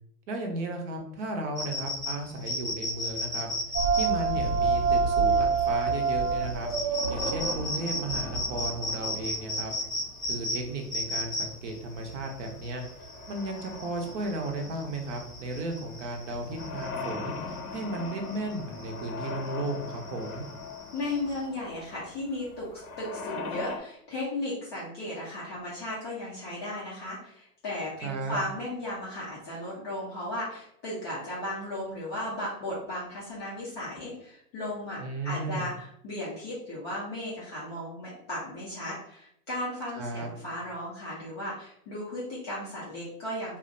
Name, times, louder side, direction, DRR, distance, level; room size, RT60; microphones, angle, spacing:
voice 1, 0.3-3.5 3.9-6.7 7.1-9.7 10.3-12.8 13.3-20.4 28.0-28.4 35.0-35.7 39.9-40.3, right 2 dB, 50° right, 3 dB, 0.7 m, -34 dB
sound 1, 1.6-21.4, left 1 dB, ahead, 0.7 m, -36 dB
sound 2, 3.7-8.7, right 5 dB, 75° right, 1.1 m, -26 dB
sound 3, 5.8-23.8, left 4 dB, 65° left, 0.6 m, -42 dB
voice 2, 20.9-43.6, left 1 dB, 20° left, -8 dB, 0.3 m, -35 dB
2.5 x 2.1 x 2.5 m, 0.70 s
hypercardioid pair, 105°, 47 cm